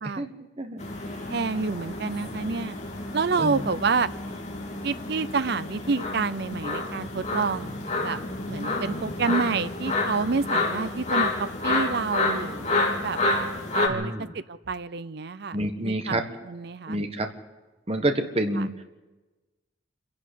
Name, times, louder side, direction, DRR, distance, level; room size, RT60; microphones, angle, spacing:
sound 1, 0.8-13.9, left 2 dB, 35° left, 3.0 m, -29 dB
voice 1, 1.3-2.8 3.1-4.1 4.8-7.7 8.0-8.2 8.5-13.2 13.7-15.6 15.8-16.2 16.5-17.0 18.6-18.7, right 4 dB, 60° right, 15 dB, 0.6 m, -28 dB
voice 2, 13.9-14.3 15.5-16.2 16.9-17.3 17.9-18.8, right 1 dB, 30° right, 6 dB, 1.6 m, -28 dB
27.0 x 11.5 x 8.5 m, 1.2 s
head